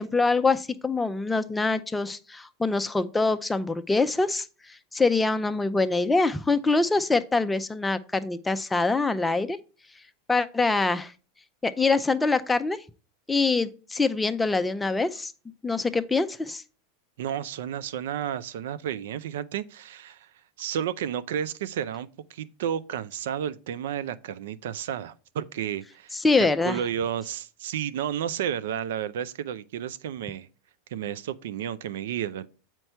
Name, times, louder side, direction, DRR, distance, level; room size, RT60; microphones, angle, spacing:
voice 1, 0.0-9.6 10.3-11.1 11.6-12.8 13.3-15.3 15.6-16.6 26.1-26.8, left 3 dB, 10° left, 0.5 m, -24 dB
voice 2, 17.2-20.3 20.6-30.5 30.9-32.5, right 9 dB, 75° right, 0.5 m, -32 dB
7.9 x 4.5 x 4.4 m
hypercardioid pair, 110°, 0 cm